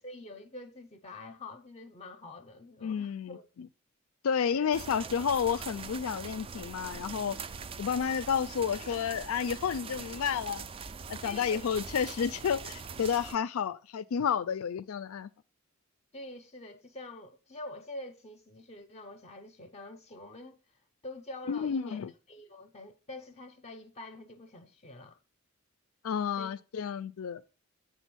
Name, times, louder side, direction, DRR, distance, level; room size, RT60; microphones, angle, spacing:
voice 1, 0.0-3.5 4.5-4.7 11.2-11.7 16.1-20.6 21.0-22.0 22.3-25.2 26.4-26.5, left 2 dB, 30° left, 0.6 m, -46 dB
voice 2, 2.8-3.7 4.2-7.4 7.8-10.6 11.1-15.3 21.5-22.1 26.0-27.4, left 7 dB, 80° left, 0.4 m, -31 dB
sound 1, 4.7-13.3, right 5 dB, 25° right, 0.3 m, -42 dB
8.2 x 3.7 x 6.1 m
head